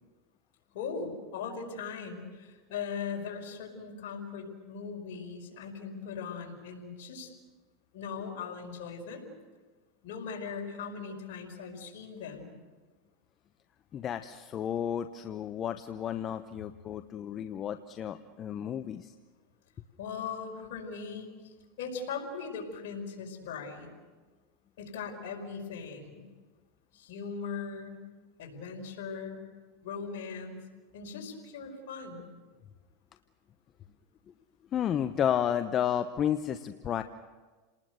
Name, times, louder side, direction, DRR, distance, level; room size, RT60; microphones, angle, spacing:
voice 1, 0.7-7.3 7.9-9.3 10.0-12.5 20.0-23.9 24.8-26.2 26.9-28.0 28.4-29.4 29.8-30.6 30.9-32.3, left 5 dB, 70° left, 0 dB, 5.3 m, -39 dB
voice 2, 13.9-19.1 34.7-37.0, left 9 dB, 35° left, 9 dB, 0.9 m, -32 dB
29.5 x 19.5 x 6.7 m, 1.4 s
supercardioid pair, 120°, 0 cm